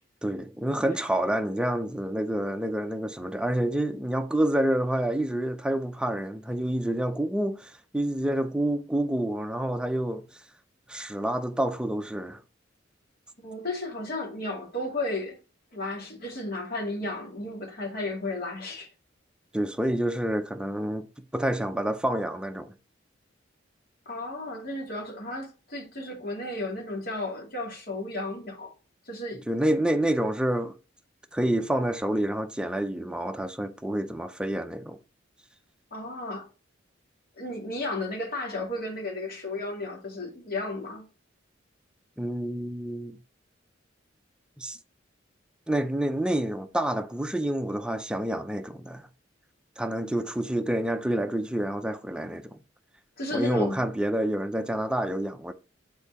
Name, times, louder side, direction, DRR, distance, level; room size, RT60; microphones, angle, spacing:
voice 1, 0.2-10.3 10.9-12.4 19.5-21.1 21.3-22.7 29.5-30.7 31.3-35.0 42.2-43.2 44.6-44.8 45.7-49.1 49.8-52.6 53.3-55.5, right 1 dB, 5° right, 0.6 m, -28 dB
voice 2, 13.4-15.4 15.7-18.9 24.1-28.7 29.1-29.4 35.9-36.5 37.4-41.0 53.2-53.8, left 2 dB, 50° left, 2.7 m, -33 dB
7.1 x 4.5 x 4.1 m
head